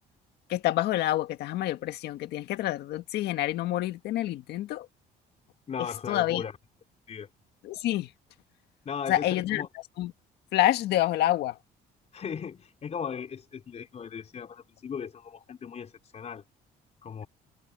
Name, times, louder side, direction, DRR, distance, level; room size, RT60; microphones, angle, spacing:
voice 1, 0.5-4.9 5.8-6.4 7.6-8.1 9.1-9.7 10.0-10.1 10.5-11.6, left 14 dB, 75° left, 1.8 m, -27 dB
voice 2, 5.7-6.5 7.1-7.3 8.8-9.7 12.1-16.4 17.0-17.3, left 7 dB, 40° left, 5.0 m, -37 dB
cardioid pair, 110°, 17 cm